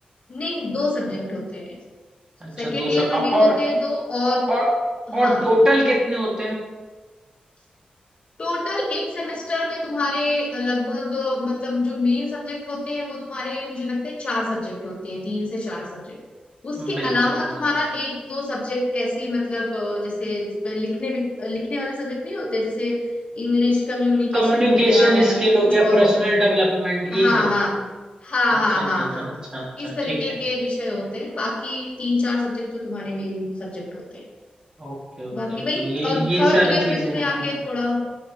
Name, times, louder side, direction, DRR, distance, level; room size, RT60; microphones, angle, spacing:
voice 1, 0.3-1.8 2.6-4.5 5.1-5.5 8.4-16.2 16.6-23.0 23.3-26.1 27.1-27.7 28.2-29.3 29.8-34.2 35.3-38.0, left 2 dB, 45° left, -3 dB, 2.2 m, -25 dB
voice 2, 2.4-3.6 4.5-4.7 5.1-6.6 16.8-17.1 24.3-27.4 28.7-30.2 34.8-37.6, equal, 30° right, -4 dB, 2.4 m, -21 dB
9.1 x 5.4 x 5.5 m, 1.3 s
wide cardioid pair, 145°, 3 cm